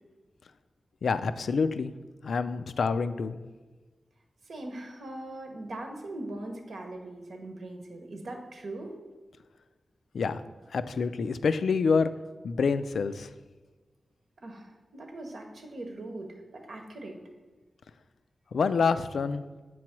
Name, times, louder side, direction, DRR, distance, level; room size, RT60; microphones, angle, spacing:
voice 1, 1.0-1.9 2.2-3.4 10.1-10.4 10.7-12.1 12.4-13.3 18.5-19.4, left 5 dB, 90° left, 12 dB, 0.3 m, -27 dB
voice 2, 4.5-8.9 14.4-17.2, right 2 dB, 75° right, 3 dB, 1.0 m, -40 dB
7.7 x 3.1 x 5.9 m, 1.2 s
wide cardioid pair, 140°, 0 cm